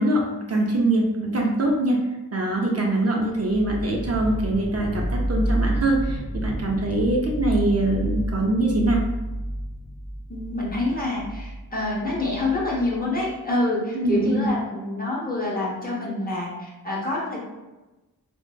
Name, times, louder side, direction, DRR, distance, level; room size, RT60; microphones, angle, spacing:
voice 1, 0.0-2.0 2.3-9.0 13.9-14.5, right 2 dB, 45° right, -1 dB, 0.4 m, -23 dB
sound 1, 3.4-13.3, right 1 dB, 10° right, 0.9 m, -30 dB
voice 2, 10.3-17.4, left 2 dB, 25° left, -4 dB, 0.7 m, -27 dB
3.1 x 2.1 x 2.3 m, 1.1 s
wide cardioid pair, 85°, 36 cm